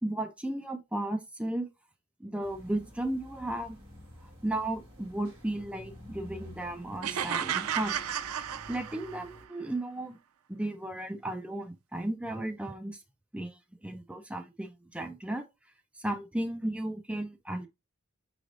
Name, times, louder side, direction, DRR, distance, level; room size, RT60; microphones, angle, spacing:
voice 1, 0.0-1.7 2.2-3.8 4.4-8.0 8.7-10.2 10.5-13.0 13.3-15.4 16.0-17.7, right 1 dB, 5° right, 0.5 m, -34 dB
sound 1, 2.4-9.4, equal, 25° right, 1.4 m, -50 dB
sound 2, 7.0-9.3, right 9 dB, 85° right, 0.4 m, -33 dB
4.9 x 3.3 x 2.5 m
head